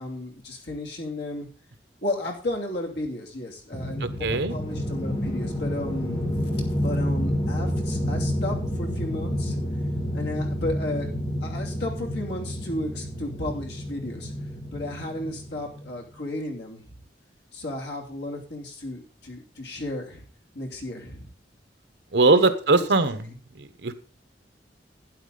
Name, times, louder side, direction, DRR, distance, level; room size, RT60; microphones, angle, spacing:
voice 1, 0.0-1.5 2.0-6.2 6.8-9.5 10.1-11.1 11.4-14.3 14.7-16.8 17.5-20.2 20.5-21.3 22.3-22.8, left 1 dB, 75° left, 0 dB, 2.8 m, -33 dB
sound 1, 3.7-16.0, equal, 25° left, 2.8 m, -29 dB
voice 2, 4.0-4.6 22.1-23.3 23.6-23.9, right 3 dB, 75° right, 10 dB, 1.1 m, -21 dB
12.0 x 9.4 x 3.9 m, 0.39 s
head